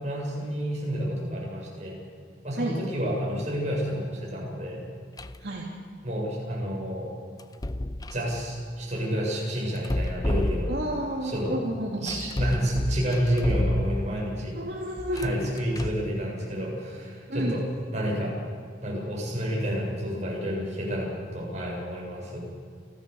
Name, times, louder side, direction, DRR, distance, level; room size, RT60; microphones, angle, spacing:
voice 1, 0.0-1.9 2.4-4.8 6.0-7.1 8.1-10.7 11.2-11.5 12.0-14.6 15.1-17.6 17.9-18.3 18.8-22.4, equal, 40° right, -3 dB, 7.8 m, -29 dB
sound 1, 5.2-5.5 7.4-8.3 9.8-11.1 12.1-14.3 15.0-16.1, left 1 dB, 20° left, 0.6 m, -30 dB
voice 2, 10.7-12.1 14.5-15.5 17.3-17.5, right 1 dB, 60° right, -2 dB, 2.7 m, -31 dB
30.0 x 13.5 x 7.0 m, 2.1 s
head